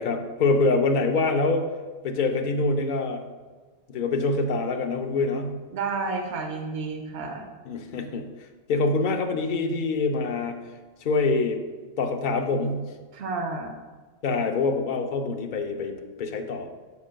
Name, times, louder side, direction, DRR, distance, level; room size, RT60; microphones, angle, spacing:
voice 1, 0.0-1.6 2.0-3.2 3.9-5.6 7.6-8.3 8.7-10.6 11.0-11.6 12.0-12.9 14.2-16.7, left 3 dB, 55° left, 4 dB, 0.7 m, -25 dB
voice 2, 5.7-7.5 13.1-13.8, right 3 dB, 80° right, 4 dB, 1.0 m, -31 dB
9.5 x 6.3 x 2.2 m, 1.4 s
omnidirectional pair, 1.1 m